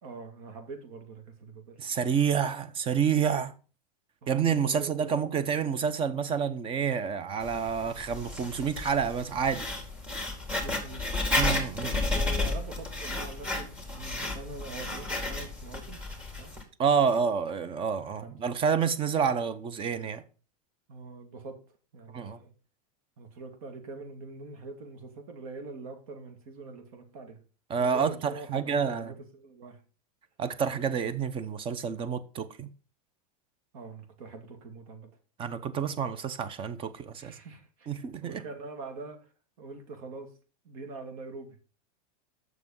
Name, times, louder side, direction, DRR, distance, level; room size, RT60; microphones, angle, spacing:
voice 1, 0.0-1.8 4.2-5.2 10.5-11.0 12.1-16.0 16.4-16.5 17.0-17.3 18.2-18.4 20.9-21.6 21.9-22.5 23.2-27.4 27.8-29.8 33.7-35.1 37.2-39.2 39.6-40.3 40.6-41.6, right 3 dB, 70° right, 2.3 m, -44 dB
voice 2, 1.8-3.5 4.3-9.6 11.3-11.9 16.8-20.2 22.1-22.4 27.7-29.1 30.4-32.7 35.4-37.3 37.9-38.4, right 7 dB, 30° right, 0.9 m, -28 dB
Writing, 7.4-16.6, left 2 dB, 5° right, 2.1 m, -32 dB
7.5 x 6.3 x 5.4 m
supercardioid pair, 135°, 19 cm